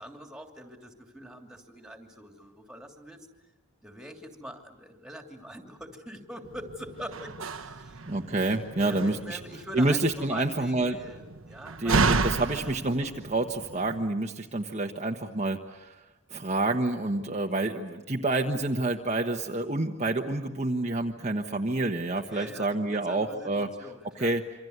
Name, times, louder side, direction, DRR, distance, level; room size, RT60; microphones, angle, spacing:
voice 1, 0.0-3.3 3.8-8.0 8.4-12.7 22.1-24.3, equal, 5° right, 3 dB, 2.9 m, -44 dB
Slam, 6.5-14.1, right 4 dB, 70° right, 1.2 m, -32 dB
voice 2, 8.1-9.4 9.7-11.0 11.8-16.0 16.3-23.7 24.2-24.4, right 2 dB, 35° right, 2 dB, 1.2 m, -28 dB
27.5 x 26.0 x 8.1 m, 1.1 s
head